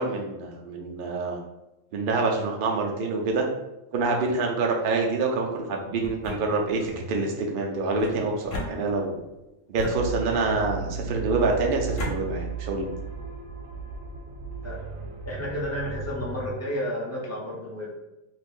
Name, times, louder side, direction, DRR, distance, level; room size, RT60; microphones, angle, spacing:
voice 1, 0.0-1.4 1.9-3.4 3.9-9.2 9.7-12.9, right 3 dB, 60° right, 1 dB, 0.6 m, -26 dB
sound 1, 6.0-7.0 8.0-9.2 9.7-10.6 11.4-12.2, left 1 dB, 75° left, 1.0 m, -36 dB
sound 2, 9.9-16.5, right 6 dB, 85° right, 1.0 m, -35 dB
voice 2, 14.6-15.0 15.3-17.9, equal, 25° left, -4 dB, 0.3 m, -32 dB
2.6 x 2.5 x 3.6 m, 0.96 s
omnidirectional pair, 1.3 m